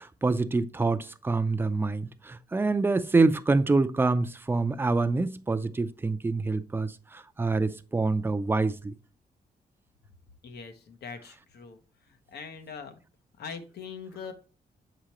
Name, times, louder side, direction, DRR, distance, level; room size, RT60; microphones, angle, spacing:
voice 1, 0.0-8.9, right 3 dB, 15° right, 0.4 m, -26 dB
voice 2, 10.4-13.0 13.4-14.3, left 5 dB, 85° left, 0.9 m, -42 dB
7.3 x 5.0 x 3.0 m
wide cardioid pair, 125°, 16 cm